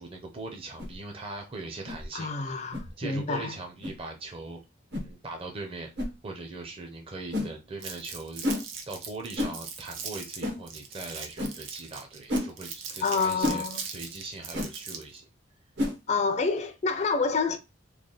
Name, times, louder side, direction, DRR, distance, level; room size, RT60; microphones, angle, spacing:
voice 1, 0.0-2.6 3.0-4.6 4.9-8.4 8.9-15.2, right 3 dB, 30° right, 0.6 m, -40 dB
sound 1, 0.8-1.0 1.9-2.0 2.7-2.9 3.8-4.0 4.9-5.1 6.0-6.1 7.3-7.5 8.4-8.6 9.4-9.6 10.4-10.6 11.4-11.5 12.3-12.5 13.4-13.6 14.5-14.7 15.8-16.0, left 1 dB, 60° right, 1.0 m, -30 dB
voice 2, 2.1-3.5 13.0-13.8 16.1-17.6, left 4 dB, 35° left, 0.4 m, -28 dB
Crumpling crinkling, 7.8-15.2, right 6 dB, 90° right, 0.8 m, -40 dB
3.3 x 2.3 x 3.8 m
head